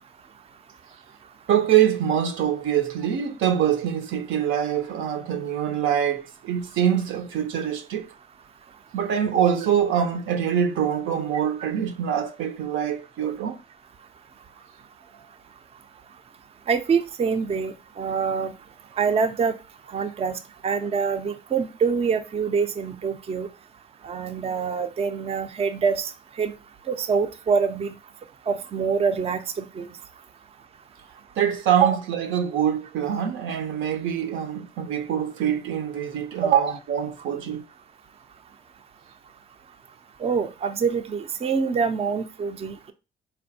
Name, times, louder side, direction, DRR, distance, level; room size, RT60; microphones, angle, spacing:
voice 1, 1.5-8.1 8.9-13.6 31.4-37.6, right 9 dB, 80° right, 0.6 m, -24 dB
voice 2, 16.7-18.5 19.0-19.5 19.9-23.5 24.0-26.1 26.4-26.5 26.9-28.0 28.5-29.9 31.8-32.0 36.4-36.7 40.2-42.9, right 6 dB, 30° right, 0.4 m, -25 dB
4.2 x 2.2 x 2.6 m
cardioid pair, 90°, 20 cm